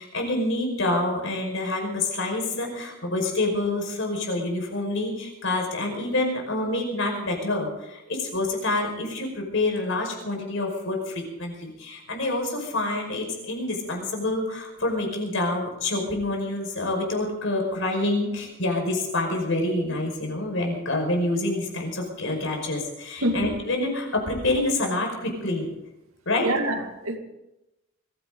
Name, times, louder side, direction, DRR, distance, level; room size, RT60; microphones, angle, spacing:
voice 1, 0.0-25.7 26.3-26.5, left 2 dB, 65° left, 2 dB, 5.4 m, -27 dB
voice 2, 26.4-27.2, right 1 dB, 85° right, 4 dB, 2.4 m, -25 dB
22.5 x 15.5 x 4.0 m, 0.91 s
head